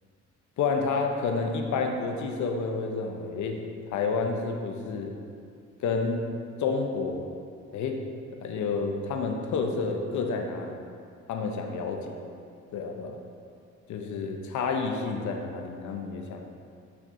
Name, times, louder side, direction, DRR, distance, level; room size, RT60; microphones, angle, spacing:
voice 1, 0.6-3.6 3.9-5.1 5.8-6.2 6.6-7.3 7.7-8.0 8.4-10.8 11.3-12.0 12.7-13.2 13.9-16.4, left 4 dB, 70° left, 3 dB, 0.7 m, -29 dB
6.8 x 5.9 x 2.6 m, 2.4 s
cardioid pair, 90°, 30 cm